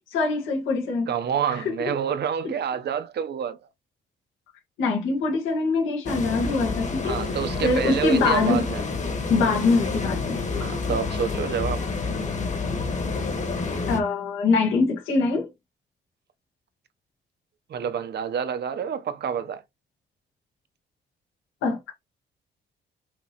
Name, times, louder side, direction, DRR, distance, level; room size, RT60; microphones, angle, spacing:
voice 1, 0.1-1.1 4.8-7.2 7.6-8.6 9.3-10.4 13.9-15.5 21.6-21.9, left 3 dB, 85° left, 1.6 m, -23 dB
voice 2, 1.1-3.6 7.0-8.8 10.6-11.9 17.7-19.6, right 8 dB, 55° right, 0.9 m, -28 dB
sound 1, 6.1-14.0, left 4 dB, 35° left, 1.4 m, -29 dB
6.0 x 3.0 x 3.0 m
cardioid pair, 90°, 20 cm